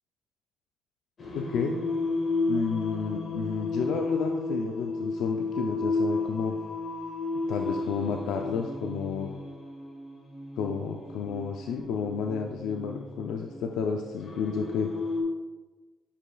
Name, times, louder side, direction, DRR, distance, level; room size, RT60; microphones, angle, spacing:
Singing, 1.2-15.2, left 3 dB, 45° left, 1.2 m, -33 dB
voice 1, 1.4-1.7 2.5-6.6 7.5-9.3 10.6-14.9, left 6 dB, 85° left, 3 dB, 0.4 m, -31 dB
8.3 x 4.9 x 2.3 m, 1.3 s
cardioid pair, 90°, 0 cm